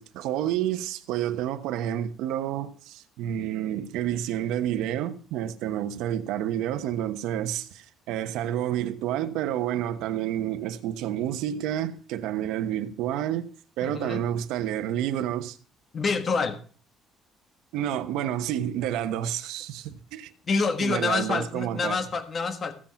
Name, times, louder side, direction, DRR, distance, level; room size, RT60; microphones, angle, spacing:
voice 1, 0.0-13.5 13.8-15.6 17.7-20.3 20.8-22.0, right 11 dB, 80° right, 1.1 m, -29 dB
voice 2, 13.8-14.2 15.9-16.6 20.5-22.7, left 4 dB, 30° left, 1.4 m, -27 dB
16.0 x 7.5 x 5.8 m
cardioid pair, 165°, 0 cm